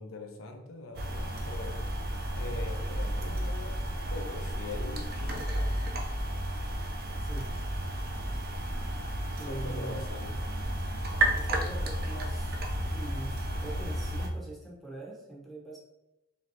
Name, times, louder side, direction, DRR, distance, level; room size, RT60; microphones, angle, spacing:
voice 1, 0.0-1.8 2.3-6.0 9.4-10.4, left 3 dB, 90° left, 4 dB, 0.5 m, -43 dB
sound 1, 0.9-14.3, right 1 dB, 50° right, 0.5 m, -32 dB
voice 2, 7.2-7.6 9.4-10.0 11.3-12.5 12.9-15.8, right 2 dB, ahead, -4 dB, 0.8 m, -42 dB
3.1 x 2.7 x 4.1 m, 0.93 s
head